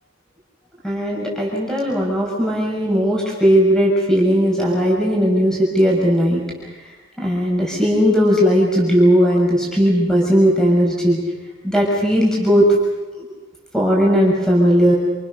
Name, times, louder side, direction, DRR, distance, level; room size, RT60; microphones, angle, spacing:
voice 1, 0.8-6.4 7.2-11.2 11.6-12.7 13.7-14.9, equal, 5° left, -3 dB, 6.6 m, -17 dB
29.0 x 29.0 x 6.8 m, 1.1 s
head